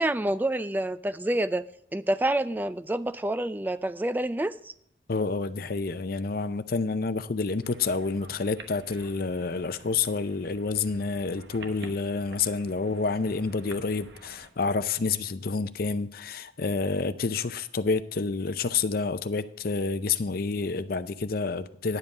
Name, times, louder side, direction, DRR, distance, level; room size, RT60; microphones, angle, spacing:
voice 1, 0.0-1.6 1.9-4.7, right 1 dB, 10° right, 0.3 m, -28 dB
voice 2, 5.1-22.0, left 4 dB, 55° left, 0.5 m, -29 dB
sound 1, 7.6-14.5, right 2 dB, 70° right, 1.1 m, -50 dB
10.5 x 7.6 x 4.9 m
head